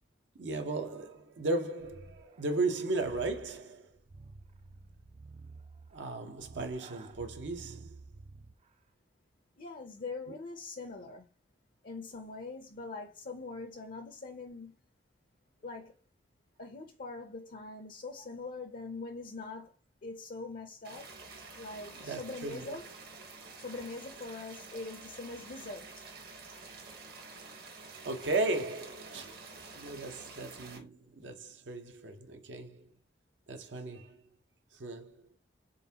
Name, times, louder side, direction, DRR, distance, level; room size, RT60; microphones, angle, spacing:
voice 1, 0.3-3.9 5.9-8.0 10.3-10.4 18.2-18.3 22.0-22.8 28.0-32.9 33.5-34.2 34.7-35.2, right 2 dB, 75° right, 0.7 m, -36 dB
sound 1, 1.8-8.7, right 3 dB, 35° right, 0.3 m, -52 dB
voice 2, 9.6-11.3 11.8-14.7 15.6-15.9 16.6-19.7 20.0-21.1 21.6-22.8 23.6-25.9, left 3 dB, 55° left, 0.5 m, -43 dB
sound 2, 20.8-30.8, right 4 dB, 60° right, 1.1 m, -49 dB
3.9 x 3.5 x 2.8 m
head